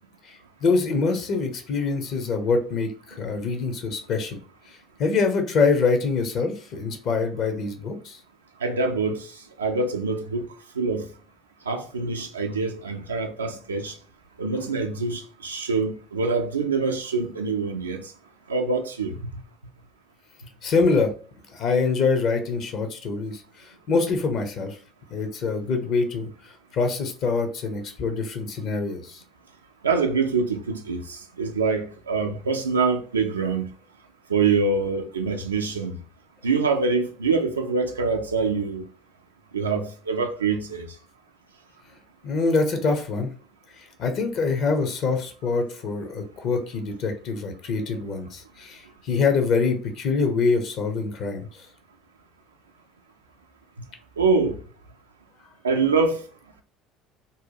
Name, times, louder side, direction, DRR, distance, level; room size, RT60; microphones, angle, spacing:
voice 1, 0.6-4.4 5.0-8.2 14.6-14.7 20.6-21.1 21.5-24.8 25.1-26.3 26.7-29.2 42.2-43.3 43.8-51.4, left 4 dB, 50° left, 0.6 m, -25 dB
voice 2, 8.6-9.3 9.6-10.5 10.8-11.1 11.7-13.9 14.4-18.0 18.5-19.2 29.8-33.7 34.3-36.0 36.4-38.8 39.5-40.9 54.2-54.6 55.6-56.2, right 4 dB, 85° right, 0.3 m, -25 dB
2.7 x 2.2 x 2.7 m
figure-of-eight pair, 60°, 0 cm